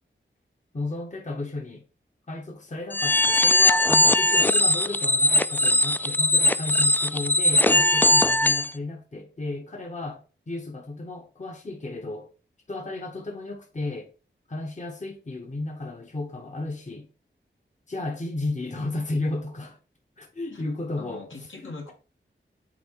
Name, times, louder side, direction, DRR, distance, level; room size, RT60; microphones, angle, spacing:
voice 1, 0.7-1.8 2.3-12.3 12.7-14.1 14.5-17.1 17.9-19.8 20.2-21.3 21.6-21.9, left 2 dB, 35° left, 1.0 m, -33 dB
sound 1, 2.9-8.7, left 1 dB, 10° left, 0.3 m, -20 dB
voice 2, 21.0-21.9, left 3 dB, 75° left, 1.8 m, -41 dB
6.1 x 3.8 x 4.6 m
wide cardioid pair, 55°, 20 cm